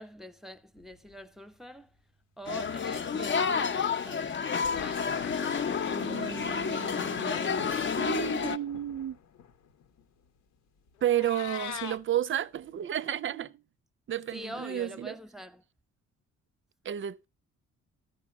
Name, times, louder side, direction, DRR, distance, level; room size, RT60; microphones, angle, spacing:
voice 1, 0.0-1.9 2.4-4.3 4.7-5.1 6.1-7.6 14.3-15.6, equal, ahead, 0.9 m, -45 dB
sound 1, 0.8-1.4 4.5-12.2 12.6-12.8, left 8 dB, 90° left, 1.5 m, -48 dB
sound 2, 2.5-8.6, left 6 dB, 40° left, 0.8 m, -30 dB
voice 2, 5.9-7.7 8.0-9.2 11.0-13.6 14.1-15.2 16.8-17.3, right 11 dB, 40° right, 0.5 m, -32 dB
Meow, 11.0-12.0, left 12 dB, 70° left, 0.7 m, -39 dB
14.0 x 5.1 x 6.0 m
cardioid pair, 90°, 30 cm